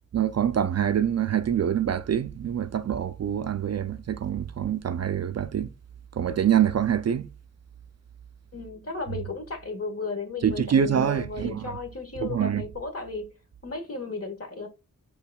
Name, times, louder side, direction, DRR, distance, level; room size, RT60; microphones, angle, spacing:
voice 1, 0.1-5.7 6.1-7.3 10.4-11.7 12.2-12.6, right 9 dB, 50° right, 0.4 m, -25 dB
voice 2, 8.5-13.3 13.6-14.7, left 4 dB, 45° left, 1.4 m, -35 dB
5.6 x 3.9 x 2.3 m
cardioid pair, 65°, 34 cm